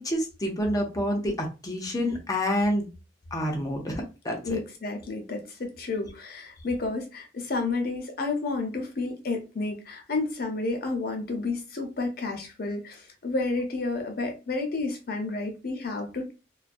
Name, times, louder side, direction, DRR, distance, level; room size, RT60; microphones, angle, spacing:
voice 1, 0.0-2.9 3.3-4.6, equal, 20° left, 1 dB, 0.6 m, -28 dB
voice 2, 4.4-16.3, left 3 dB, 60° left, 3 dB, 0.7 m, -31 dB
2.3 x 2.1 x 2.5 m, 0.30 s
head